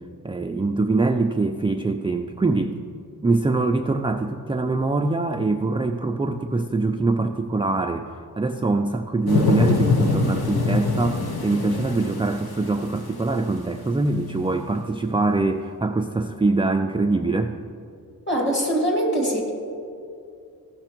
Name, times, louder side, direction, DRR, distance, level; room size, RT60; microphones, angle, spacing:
voice 1, 0.2-2.8 3.2-8.1 8.4-17.5, right 3 dB, 15° right, 5 dB, 0.3 m, -23 dB
sound 1, 9.3-13.3 13.8-13.9, left 3 dB, 80° left, 0.9 m, -23 dB
voice 2, 18.3-19.5, right 1 dB, 30° left, 0 dB, 2.3 m, -22 dB
15.5 x 5.9 x 4.5 m, 2.5 s
wide cardioid pair, 115°, 37 cm